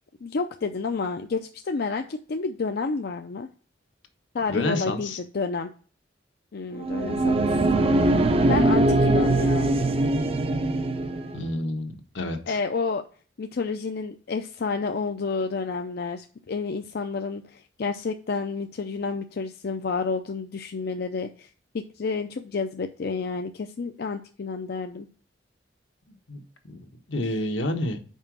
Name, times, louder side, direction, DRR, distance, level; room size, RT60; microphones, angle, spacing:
voice 1, 0.2-3.5 4.3-5.7 6.5-7.5 8.0-9.7 12.5-13.0 13.4-21.5 21.7-25.1, left 4 dB, 55° left, 6 dB, 0.5 m, -30 dB
voice 2, 4.5-5.2 11.3-12.6 26.3-28.0, left 1 dB, 80° left, 5 dB, 1.2 m, -29 dB
sound 1, 6.8-11.4, right 2 dB, 30° right, 0.5 m, -22 dB
5.5 x 4.8 x 6.1 m, 0.41 s
head